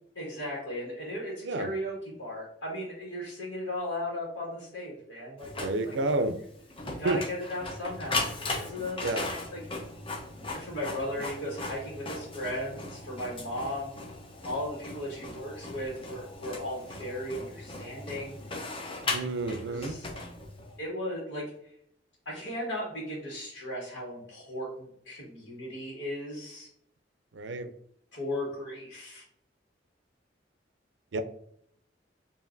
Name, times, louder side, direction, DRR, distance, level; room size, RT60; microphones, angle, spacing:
voice 1, 0.1-5.9 6.8-8.3 8.5-9.6 10.5-13.9 14.4-18.4 19.5-20.1 20.8-21.5 22.2-26.7 28.1-29.2, left 1 dB, 85° left, -5 dB, 1.4 m, -36 dB
Printer, 5.4-20.8, left 2 dB, 30° left, 0.7 m, -38 dB
voice 2, 5.6-6.4 7.0-7.2 9.0-9.3 19.1-20.0 27.3-27.7 31.1-31.2, right 2 dB, 70° right, 10 dB, 0.4 m, -30 dB
5.0 x 2.6 x 2.6 m, 0.69 s
head